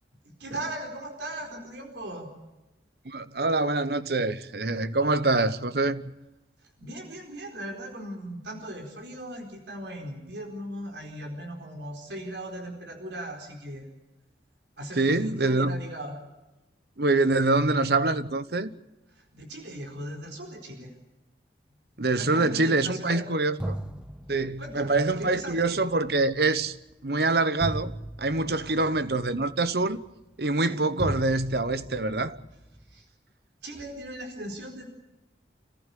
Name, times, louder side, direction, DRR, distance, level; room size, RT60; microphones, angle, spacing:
voice 1, 0.2-2.3 6.8-13.9 14.8-16.2 19.1-20.9 22.1-23.2 24.6-25.9 28.6-28.9 30.6-30.8 32.9-33.1 33.6-34.8, right 1 dB, 80° right, 4.4 m, -38 dB
voice 2, 3.0-6.0 15.0-15.8 17.0-18.7 22.0-23.8 24.3-26.8 27.0-27.9 28.2-30.0 30.4-32.4, right 2 dB, 60° right, 1.1 m, -25 dB
sound 1, 23.0-23.1 23.6-30.7 31.0-33.0, right 1 dB, 5° right, 1.0 m, -38 dB
27.5 x 15.0 x 8.4 m
head